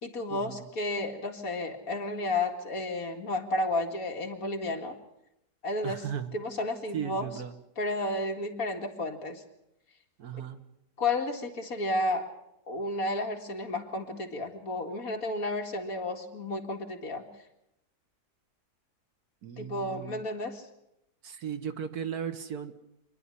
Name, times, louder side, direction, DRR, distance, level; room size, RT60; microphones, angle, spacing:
voice 1, 0.0-5.0 5.6-6.1 6.3-7.3 7.8-9.4 11.0-12.3 12.7-17.3 19.6-20.6, left 2 dB, 60° left, 2 dB, 2.5 m, -32 dB
voice 2, 5.8-6.3 6.9-7.5 10.2-10.6 19.4-20.2 21.2-22.7, right 8 dB, 70° right, 9 dB, 1.7 m, -36 dB
26.5 x 11.0 x 9.8 m, 0.84 s
omnidirectional pair, 1.7 m